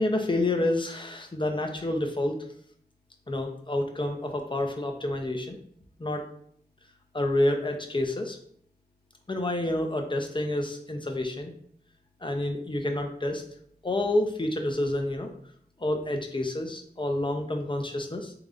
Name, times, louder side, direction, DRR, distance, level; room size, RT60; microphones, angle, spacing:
voice 1, 0.0-2.4 3.3-5.6 6.0-6.2 7.1-8.4 9.3-11.5 12.2-13.4 13.8-15.3 15.8-18.3, left 1 dB, 30° left, 3 dB, 0.6 m, -28 dB
3.7 x 3.0 x 2.4 m, 0.63 s
wide cardioid pair, 50°, 17 cm